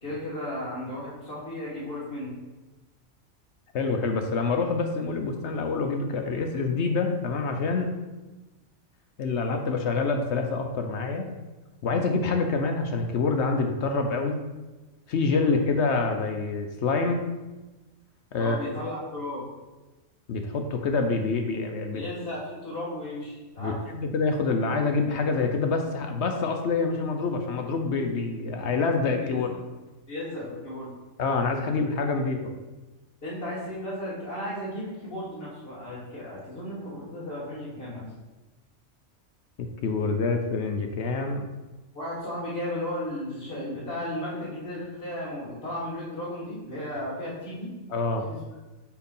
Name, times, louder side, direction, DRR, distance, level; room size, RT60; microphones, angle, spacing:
voice 1, 0.0-2.4 15.4-15.6 18.4-19.4 21.9-23.8 29.2-29.4 30.1-30.9 33.2-38.1 41.9-47.7 48.2-48.4, left 1 dB, 45° left, -10 dB, 1.9 m, -35 dB
voice 2, 3.7-7.9 9.2-11.3 11.8-14.4 15.1-17.2 18.3-18.6 20.3-22.0 23.6-29.5 31.2-32.6 39.6-41.4 47.9-48.2, left 4 dB, 65° left, 4 dB, 0.9 m, -26 dB
4.8 x 4.6 x 5.4 m, 1.1 s
omnidirectional pair, 1.4 m